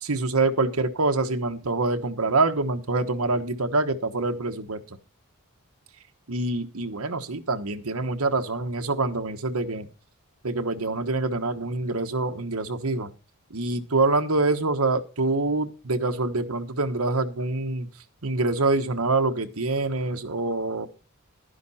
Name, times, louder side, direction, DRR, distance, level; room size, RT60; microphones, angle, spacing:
voice 1, 0.0-4.8 6.3-9.9 10.4-13.1 13.5-17.9 18.2-20.9, right 3 dB, 75° right, 6 dB, 1.2 m, -25 dB
12.0 x 10.5 x 4.3 m, 0.32 s
head